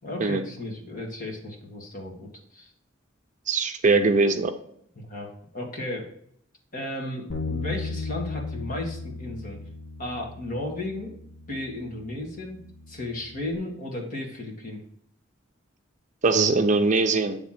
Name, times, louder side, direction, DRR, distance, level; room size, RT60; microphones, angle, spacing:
voice 1, 0.0-2.7 5.0-6.1 6.7-9.6 10.0-11.2 11.5-12.6 12.9-14.8, left 1 dB, 45° left, 0 dB, 2.0 m, -34 dB
voice 2, 3.5-4.5 16.2-17.4, right 3 dB, 40° right, 6 dB, 0.6 m, -21 dB
Bass guitar, 7.3-13.5, left 3 dB, 65° left, 1.0 m, -36 dB
8.3 x 3.5 x 5.8 m, 0.68 s
head